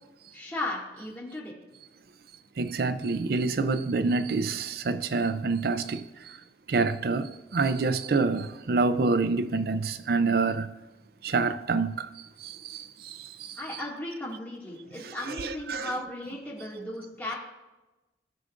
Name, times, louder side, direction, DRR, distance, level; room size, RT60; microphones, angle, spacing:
voice 1, 0.3-1.5 13.6-17.4, left 1 dB, 10° left, 2.1 m, -36 dB
voice 2, 2.6-6.0 6.7-10.7 11.2-12.1 12.4-12.8 15.0-15.9, right 3 dB, 55° right, 0.4 m, -27 dB
16.5 x 6.2 x 2.5 m
head